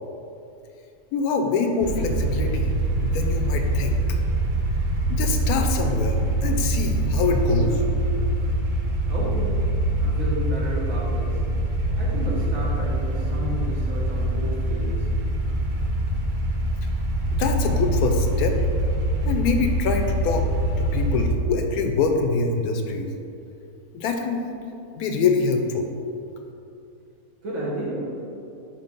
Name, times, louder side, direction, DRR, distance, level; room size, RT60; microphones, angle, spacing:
voice 1, 1.1-2.7 3.0-4.2 5.1-7.8 17.3-18.6 19.3-20.4 20.8-23.1 23.9-24.4 25.0-25.9, left 4 dB, 85° left, 4 dB, 1.1 m, -24 dB
Eight-cylinder engine idling, 1.8-21.3, right 1 dB, 45° right, 0.6 m, -24 dB
voice 2, 9.1-9.7 10.0-11.4 12.0-15.1 27.4-28.1, right 1 dB, 65° right, -5 dB, 1.6 m, -32 dB
5.8 x 3.1 x 5.2 m, 2.7 s
omnidirectional pair, 1.5 m